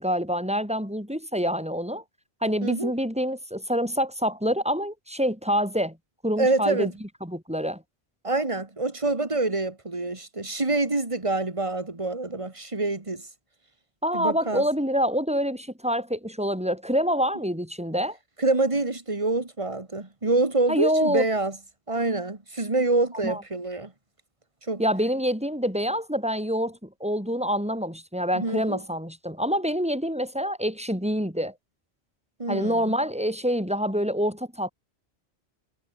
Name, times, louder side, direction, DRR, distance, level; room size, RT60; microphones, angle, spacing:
voice 1, 0.0-2.0 2.4-6.0 6.2-6.9 7.2-7.8 14.0-18.2 20.7-21.2 23.2-23.4 24.8-31.5 32.5-34.7, equal, 5° right, 7.2 m, -26 dB
voice 2, 2.6-2.9 6.4-6.9 8.2-13.3 14.1-14.6 18.4-21.6 21.9-23.9 24.7-24.8 28.3-28.8 32.4-32.9, right 2 dB, 30° right, 2.3 m, -26 dB
omnidirectional pair, 1.1 m